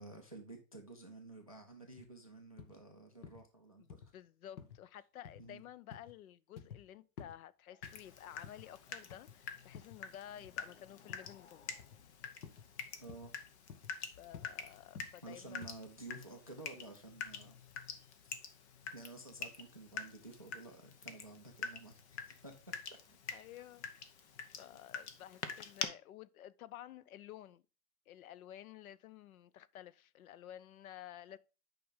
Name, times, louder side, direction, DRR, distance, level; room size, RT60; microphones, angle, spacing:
voice 1, 0.0-4.0 5.4-5.6 7.7-7.8 8.9-9.0 10.6-10.7 13.0-13.3 15.2-17.6 18.2-18.3 18.9-22.5 23.5-23.6, right 2 dB, 25° right, 0.3 m, -52 dB
sound 1, 2.0-2.1 2.6-2.8 3.2-3.5 3.9-4.1 4.6-4.8 5.2-5.5 5.9-6.1 6.6-6.8 7.2-7.4 7.8-8.7 9.1-9.4 9.7-10.0 10.4-10.7 11.1-11.3 11.8-12.0 12.4-12.7 13.1-13.3 13.7-13.9 14.3-14.5 14.9-15.2 15.6-15.8, left 7 dB, 90° left, 1.6 m, -52 dB
voice 2, 3.8-11.7 14.0-15.7 23.3-23.9 24.2-27.6 28.1-31.4, left 12 dB, 60° left, 0.5 m, -53 dB
Water tap faucet / Drip, 7.8-25.9, left 6 dB, 40° left, 0.9 m, -47 dB
8.7 x 5.3 x 3.7 m
supercardioid pair, 170°, 49 cm